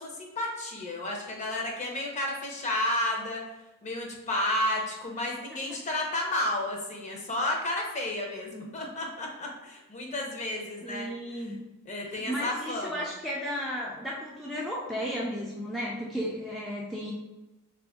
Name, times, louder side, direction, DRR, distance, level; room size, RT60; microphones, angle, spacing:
voice 1, 0.0-3.4 3.8-11.5 11.9-13.1, left 1 dB, 35° left, 0 dB, 0.7 m, -32 dB
voice 2, 10.8-11.6 12.3-17.1, equal, ahead, -6 dB, 0.4 m, -34 dB
3.7 x 2.5 x 3.5 m, 1.1 s
head